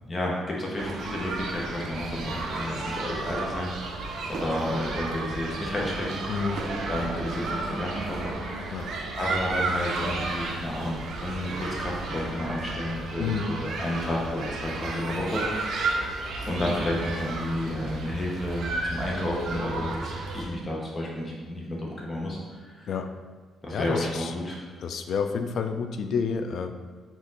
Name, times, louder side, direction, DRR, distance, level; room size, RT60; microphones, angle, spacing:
voice 1, 0.1-6.2 6.9-8.9 9.2-15.7 16.4-22.9 23.6-24.6, left 1 dB, 30° left, -3 dB, 1.1 m, -31 dB
sound 1, 0.8-20.4, right 3 dB, 65° right, 0.6 m, -33 dB
voice 2, 6.3-6.6 8.7-8.9 13.2-13.5 22.9-23.1 23.7-24.3 24.8-26.7, left 5 dB, 65° left, 7 dB, 0.3 m, -29 dB
4.4 x 2.9 x 3.9 m, 1.4 s
cardioid pair, 90°, 0 cm